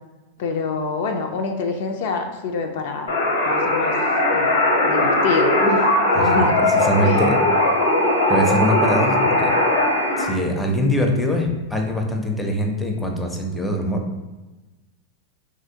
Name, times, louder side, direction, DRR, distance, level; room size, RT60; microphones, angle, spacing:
voice 1, 0.4-3.2 3.4-3.9 4.3-4.6 4.8-5.8 6.1-6.6 7.0-7.2, left 4 dB, 65° left, 3 dB, 0.4 m, -26 dB
sound 1, 3.1-10.3, left 2 dB, 80° left, 0.8 m, -19 dB
voice 2, 6.1-7.4 8.3-9.5 10.2-14.0, equal, 10° left, 2 dB, 0.5 m, -23 dB
Microwave oven / Alarm, 6.1-10.2, right 9 dB, 85° right, 0.3 m, -34 dB
2.9 x 2.5 x 2.7 m, 1.1 s
hypercardioid pair, 105°, 0 cm